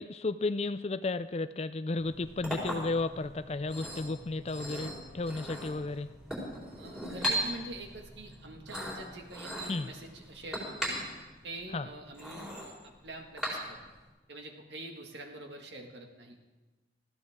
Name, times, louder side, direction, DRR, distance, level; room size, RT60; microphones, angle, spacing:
voice 1, 0.0-6.1 9.7-9.9 11.7-11.9, left 3 dB, 35° left, 13 dB, 0.4 m, -33 dB
Chink clink, 2.0-14.0, equal, 5° right, 4.5 m, -39 dB
voice 2, 6.8-11.0 11.4-12.7 13.0-13.8 14.3-16.4, right 2 dB, 70° right, 2 dB, 1.9 m, -45 dB
19.5 x 15.0 x 3.7 m, 1.2 s
head